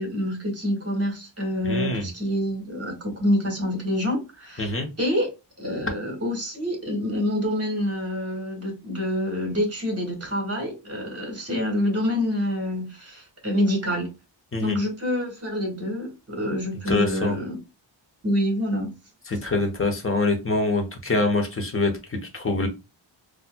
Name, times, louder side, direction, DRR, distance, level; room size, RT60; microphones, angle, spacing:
voice 1, 0.0-5.3 5.6-14.1 14.6-17.6 18.2-18.9, equal, 30° right, 1.8 m, -27 dB
voice 2, 1.6-2.1 4.6-4.9 14.5-14.8 16.9-17.3 19.3-22.7, left 2 dB, 30° left, 1.0 m, -25 dB
4.3 x 2.4 x 2.2 m
wide cardioid pair, 120°, 45 cm